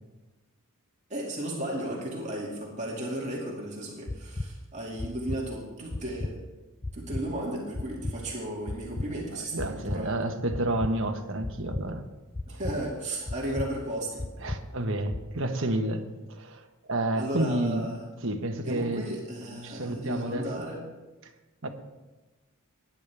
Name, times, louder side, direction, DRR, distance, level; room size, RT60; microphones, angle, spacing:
voice 1, 1.1-6.4 6.9-10.2 12.5-14.2 17.1-18.0 18.6-20.8, right 1 dB, 30° right, -3 dB, 2.4 m, -34 dB
sound 1, 4.1-4.5 5.0-5.4 5.9-6.3 6.8-7.2 7.7-8.2 8.7-9.1 9.6-10.0 10.5-10.9 11.4-11.8 12.3-12.8 13.3-13.7 14.2-14.6 15.1-15.2, left 2 dB, 20° left, 0.4 m, -33 dB
voice 2, 9.3-12.0 12.5-12.6 14.4-17.9 18.2-19.1 19.6-20.5 21.2-21.3 21.6-21.7, right 1 dB, 60° right, 5 dB, 1.3 m, -30 dB
19.5 x 10.5 x 3.5 m, 1.1 s
head